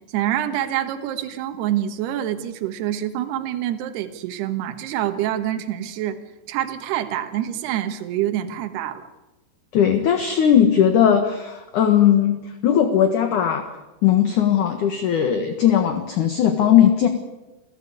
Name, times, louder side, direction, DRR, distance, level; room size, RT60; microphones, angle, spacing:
voice 1, 0.1-6.2 6.5-9.1, right 12 dB, 70° right, 8 dB, 3.3 m, -26 dB
voice 2, 9.7-13.7 14.0-17.1, left 9 dB, 60° left, 7 dB, 2.5 m, -18 dB
28.5 x 15.5 x 8.3 m, 1.0 s
omnidirectional pair, 5.1 m